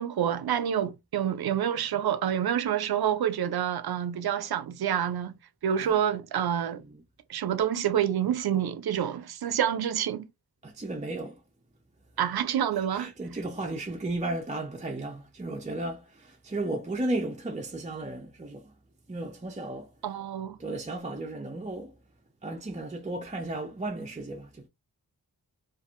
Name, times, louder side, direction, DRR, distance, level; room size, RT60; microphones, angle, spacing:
voice 1, 0.0-6.8 7.3-10.3 12.2-13.1 20.0-20.6, right 9 dB, 75° right, 0.5 m, -28 dB
voice 2, 10.6-11.4 12.9-18.7 19.1-19.9 20.6-21.9 22.4-24.7, right 2 dB, 20° right, 0.5 m, -34 dB
2.6 x 2.5 x 2.4 m
cardioid pair, 55°, 38 cm